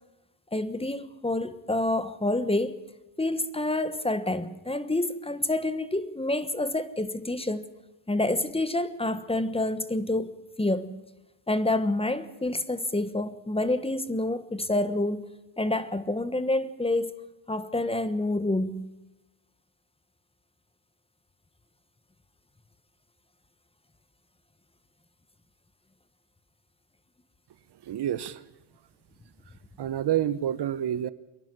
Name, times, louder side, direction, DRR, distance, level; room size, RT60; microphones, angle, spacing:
voice 1, 0.5-2.8 3.2-7.7 8.1-11.0 11.5-15.3 15.6-17.2 17.5-18.9, left 2 dB, 10° left, 1.2 m, -28 dB
voice 2, 27.8-28.4 29.8-31.1, right 11 dB, 60° right, 0.9 m, -28 dB
24.0 x 11.5 x 9.8 m
cardioid pair, 105°, 46 cm